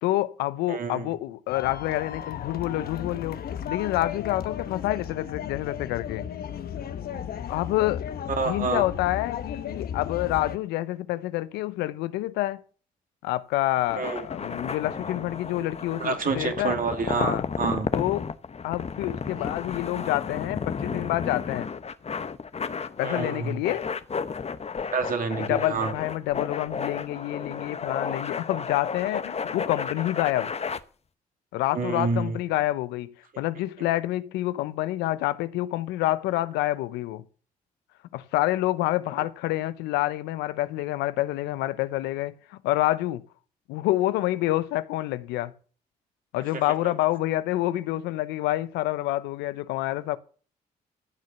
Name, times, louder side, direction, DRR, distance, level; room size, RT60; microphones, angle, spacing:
voice 1, 0.0-6.3 7.5-8.0 8.4-12.6 13.2-16.8 17.1-17.4 17.9-18.2 18.6-21.7 23.0-23.9 25.4-30.5 31.5-33.1 33.4-37.2 38.1-43.2 43.7-45.5 46.3-50.2, left 16 dB, 90° left, 0.7 m, -27 dB
voice 2, 0.7-1.2 8.3-8.9 14.0-14.3 16.0-17.9 23.0-23.6 24.9-25.9 31.7-32.4 33.8-33.9 46.5-46.6, right 4 dB, 55° right, 2.8 m, -28 dB
sound 1, 1.5-10.6, left 8 dB, 65° left, 1.1 m, -35 dB
sound 2, 13.8-30.8, left 5 dB, 40° left, 0.9 m, -33 dB
14.5 x 6.5 x 6.8 m
supercardioid pair, 55°, 17 cm